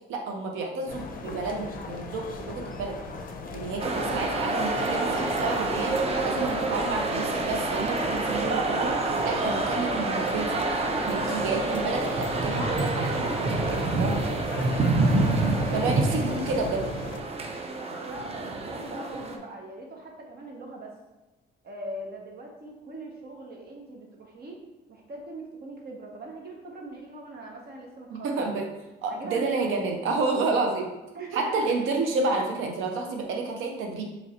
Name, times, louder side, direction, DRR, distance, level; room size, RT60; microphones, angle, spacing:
voice 1, 0.1-3.0 3.5-10.6 11.0-14.2 15.7-16.9 28.1-28.7 29.0-30.9 31.3-34.0, right 3 dB, 85° right, 3 dB, 0.7 m, -30 dB
sound 1, 0.9-17.2, left 4 dB, 45° left, 0.5 m, -38 dB
sound 2, 3.8-19.4, right 3 dB, 30° right, 0.5 m, -27 dB
voice 2, 15.0-16.1 18.0-20.9 21.6-24.6 24.9-28.5 29.1-29.7 30.0-30.1 31.1-31.7, right 2 dB, 55° right, 0 dB, 1.0 m, -40 dB
3.1 x 2.5 x 4.2 m, 1.1 s
cardioid pair, 90°, 20 cm